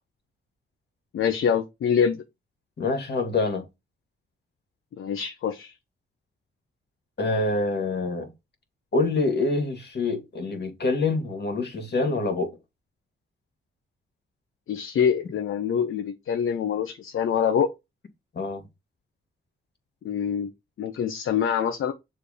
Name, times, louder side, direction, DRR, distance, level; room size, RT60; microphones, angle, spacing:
voice 1, 1.1-2.2 5.0-5.7 14.7-17.7 20.0-20.5 20.8-21.9, left 7 dB, 75° left, 0.8 m, -25 dB
voice 2, 2.8-3.7 7.2-8.3 8.9-12.5 18.3-18.7, left 3 dB, 55° left, 2.1 m, -26 dB
6.8 x 3.4 x 5.0 m
cardioid pair, 65°, 21 cm